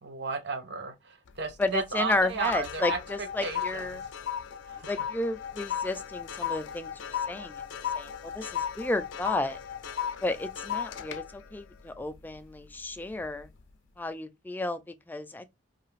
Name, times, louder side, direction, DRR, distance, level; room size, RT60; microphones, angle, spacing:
voice 1, 0.0-3.0 3.4-3.9 4.7-4.9, right 4 dB, 65° right, 0.6 m, -33 dB
sound 1, 1.3-1.8 2.1-12.7 13.1-13.4, left 8 dB, 90° left, 0.4 m, -36 dB
voice 2, 1.6-4.0 4.9-7.6 7.9-9.6 10.2-13.5 14.0-15.5, left 2 dB, 10° left, 0.3 m, -32 dB
2.6 x 2.4 x 3.2 m
head